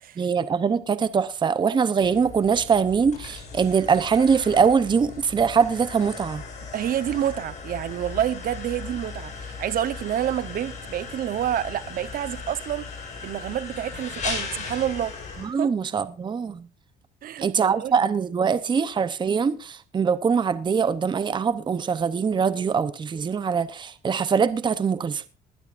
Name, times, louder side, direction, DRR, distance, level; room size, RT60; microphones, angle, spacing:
voice 1, 0.2-6.4 15.4-16.6 17.4-25.3, right 6 dB, 25° right, 0.8 m, -23 dB
sound 1, 2.0-15.5, left 4 dB, 45° left, 7.9 m, -37 dB
voice 2, 6.7-12.9 13.2-15.1 15.5-15.7 17.2-18.0, right 11 dB, 60° right, 1.0 m, -28 dB
20.5 x 12.0 x 2.6 m
cardioid pair, 110°, 17 cm